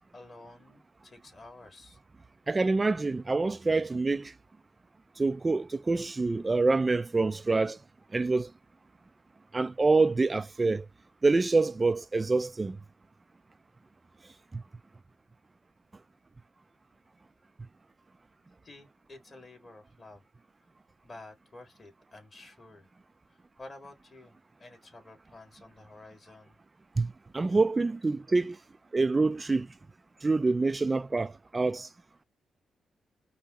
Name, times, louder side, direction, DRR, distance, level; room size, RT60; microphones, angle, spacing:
voice 1, 0.0-2.0 18.6-20.2 21.0-22.9 23.3-24.3 24.6-26.6, left 2 dB, 40° left, 2.0 m, -51 dB
voice 2, 2.5-4.3 5.2-7.8 8.1-8.5 9.5-10.8 11.2-12.8 14.5-14.6 27.0-28.6 28.9-29.7 30.2-31.9, right 3 dB, 30° right, 0.3 m, -26 dB
5.2 x 2.0 x 2.9 m
supercardioid pair, 60°, 0 cm